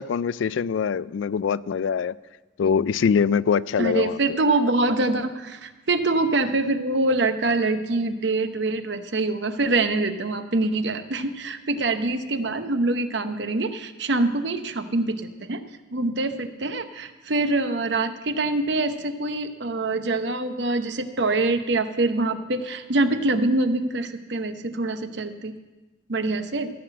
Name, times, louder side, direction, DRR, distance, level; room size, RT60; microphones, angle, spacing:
voice 1, 0.0-2.2 2.6-4.2, left 6 dB, 80° left, 19 dB, 0.3 m, -23 dB
voice 2, 3.8-15.6 15.9-25.5 26.1-26.7, right 2 dB, 65° right, 9 dB, 0.8 m, -25 dB
16.5 x 5.8 x 7.6 m, 1.1 s
head